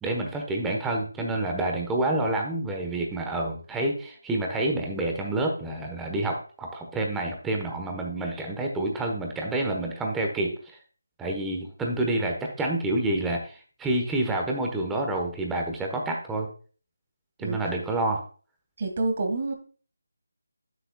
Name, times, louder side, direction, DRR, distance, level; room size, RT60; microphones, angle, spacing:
voice 1, 0.0-10.5 11.2-16.5 17.4-18.2, right 2 dB, 5° right, 1 dB, 1.2 m, -28 dB
voice 2, 18.8-19.5, right 2 dB, 40° right, 5 dB, 1.7 m, -27 dB
9.2 x 7.8 x 2.3 m, 0.39 s
figure-of-eight pair, 165°, 0 cm